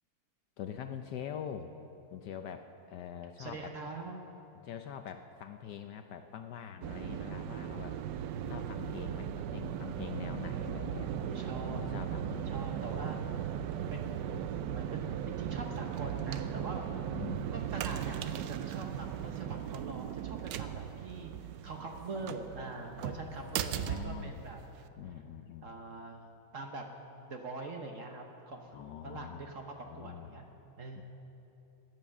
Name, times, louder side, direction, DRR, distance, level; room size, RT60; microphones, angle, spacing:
voice 1, 0.6-1.7 2.1-3.7 4.6-8.0 8.5-11.2 11.6-12.6 17.1-17.5 23.0-24.4 25.0-25.7 28.7-29.4 29.9-30.3 31.0-31.1, left 9 dB, 70° left, 7 dB, 1.1 m, -44 dB
voice 2, 3.4-4.2 10.9-11.9 12.5-13.3 13.9-14.5 14.7-16.9 17.5-24.6 25.6-26.3 26.5-26.9 27.3-28.7 29.0-30.5 30.8-31.0, right 3 dB, 50° right, 3 dB, 1.1 m, -43 dB
sound 1, 6.8-24.9, right 9 dB, 75° right, 1.1 m, -37 dB
17.0 x 9.8 x 7.1 m, 2.9 s
omnidirectional pair, 2.2 m